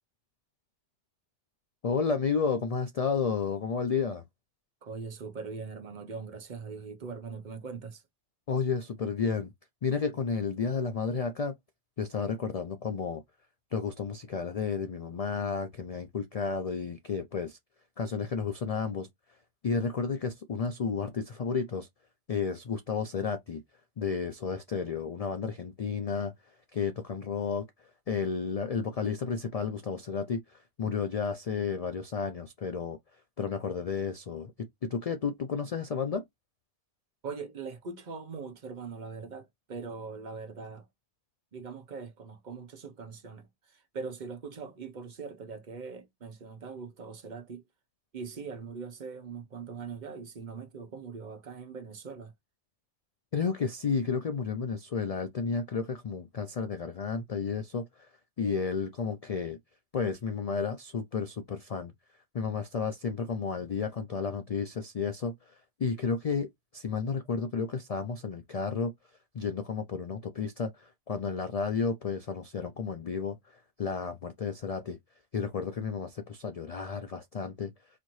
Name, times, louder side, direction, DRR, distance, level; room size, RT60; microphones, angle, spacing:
voice 1, 1.8-4.2 8.5-9.5 9.8-11.5 12.0-13.2 13.7-17.6 18.0-19.1 19.6-21.9 22.3-23.6 24.0-26.3 26.7-27.6 28.1-33.0 33.4-34.5 34.9-36.2 53.3-58.1 58.4-59.6 59.9-61.9 62.3-66.5 66.7-68.9 69.3-75.0 75.3-77.7, left 5 dB, 70° left, 0.3 m, -32 dB
voice 2, 4.8-8.0 37.2-40.9 41.5-47.6 48.1-52.3, right 5 dB, 45° right, 0.8 m, -41 dB
4.2 x 2.7 x 3.0 m
omnidirectional pair, 1.2 m